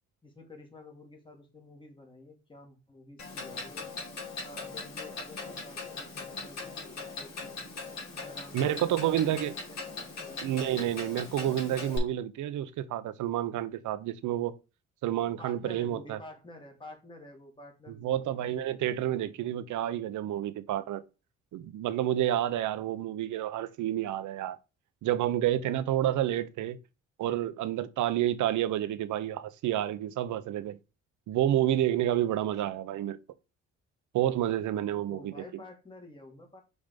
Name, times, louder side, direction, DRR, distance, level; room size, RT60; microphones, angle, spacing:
voice 1, 0.2-3.9 4.4-7.6 8.1-10.6 15.4-18.6 35.1-36.6, left 2 dB, 15° left, 2.0 m, -50 dB
Clock, 3.2-12.0, left 4 dB, 65° left, 2.5 m, -40 dB
voice 2, 8.5-9.5 10.4-14.5 15.0-16.2 18.0-21.0 21.5-24.6 25.0-26.8 27.2-30.8 31.3-33.2 34.1-35.3, right 12 dB, 75° right, 0.8 m, -29 dB
5.4 x 3.6 x 5.2 m
cardioid pair, 90°, 30 cm